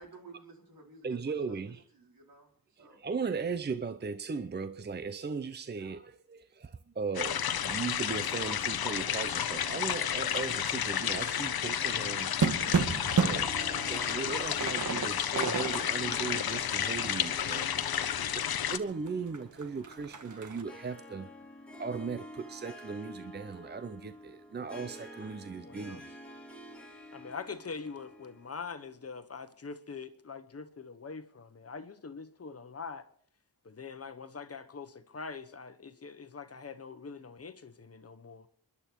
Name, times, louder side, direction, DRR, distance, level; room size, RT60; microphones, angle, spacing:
voice 1, 0.0-2.5 2.8-3.0, right 3 dB, 75° right, 4.6 m, -53 dB
voice 2, 1.0-1.8 2.8-12.4 13.1-18.0 18.3-21.3 21.8-26.2 27.1-27.3, right 5 dB, 30° right, 0.7 m, -38 dB
sound 1, 7.1-18.8, left 9 dB, 80° left, 0.9 m, -31 dB
sound 2, 11.4-18.3 18.7-18.8 19.1-20.6, right 5 dB, 55° right, 1.5 m, -33 dB
Harp, 12.2-28.9, left 1 dB, 5° left, 2.7 m, -49 dB
voice 3, 25.6-26.0 27.1-33.1 33.6-38.5, left 5 dB, 40° left, 1.1 m, -43 dB
28.5 x 11.0 x 4.5 m
wide cardioid pair, 90°, 36 cm